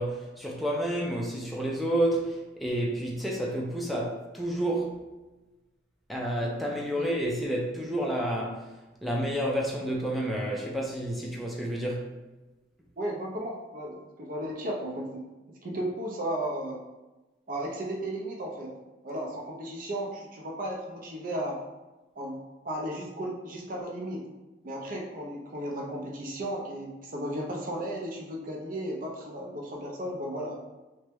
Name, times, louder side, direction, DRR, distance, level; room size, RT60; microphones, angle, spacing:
voice 1, 0.0-4.9 6.1-8.6 9.0-12.1, right 1 dB, ahead, -3 dB, 0.4 m, -30 dB
voice 2, 13.0-15.2 15.6-16.8 17.5-18.7 19.0-21.6 22.2-22.4 22.6-24.3 24.6-30.6, right 1 dB, 50° right, 0 dB, 0.6 m, -34 dB
3.2 x 2.2 x 3.0 m, 1.1 s
head